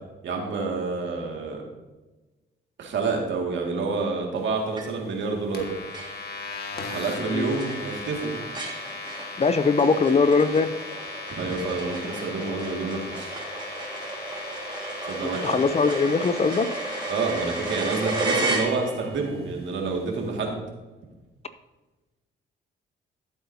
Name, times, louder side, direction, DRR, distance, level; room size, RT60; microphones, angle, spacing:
voice 1, 0.2-1.6 2.8-5.7 6.9-8.3 11.3-13.3 15.0-15.6 17.1-20.6, right 4 dB, 70° right, 1 dB, 2.2 m, -28 dB
sound 1, 4.8-5.2 5.6-5.7 5.9-19.2, right 2 dB, 20° right, 2.0 m, -34 dB
sound 2, 5.5-18.3, left 3 dB, 55° left, 1.6 m, -38 dB
voice 2, 9.4-10.7 15.4-16.7, left 4 dB, 30° left, 12 dB, 0.6 m, -21 dB
14.0 x 7.9 x 2.8 m, 1.1 s
cardioid pair, 90°, 20 cm